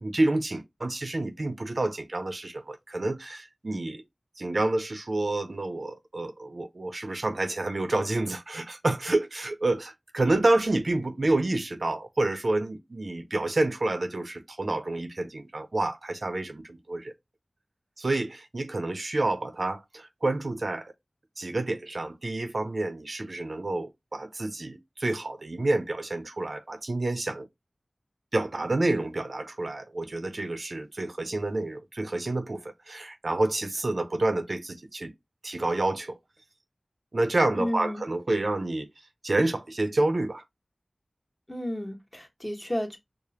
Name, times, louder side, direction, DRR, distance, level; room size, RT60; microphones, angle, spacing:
voice 1, 0.0-4.0 4.4-17.1 18.0-20.9 21.4-27.5 28.3-35.1 35.4-36.2 37.1-38.9 39.2-40.4, right 2 dB, 70° right, 0.5 m, -28 dB
voice 2, 37.5-38.0 41.5-43.0, left 1 dB, 25° left, 1.2 m, -32 dB
4.9 x 2.1 x 2.8 m
wide cardioid pair, 45°, 0 cm